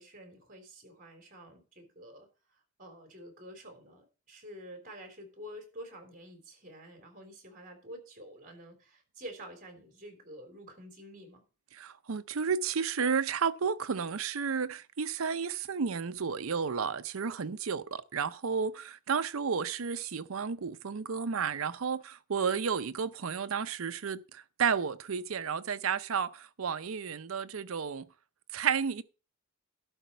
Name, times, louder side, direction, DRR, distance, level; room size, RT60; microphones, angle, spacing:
voice 1, 0.0-2.3 2.8-11.4, equal, 40° right, 3.5 m, -48 dB
voice 2, 11.7-28.1 28.5-29.0, right 6 dB, 90° right, 0.6 m, -32 dB
12.0 x 4.2 x 7.8 m
head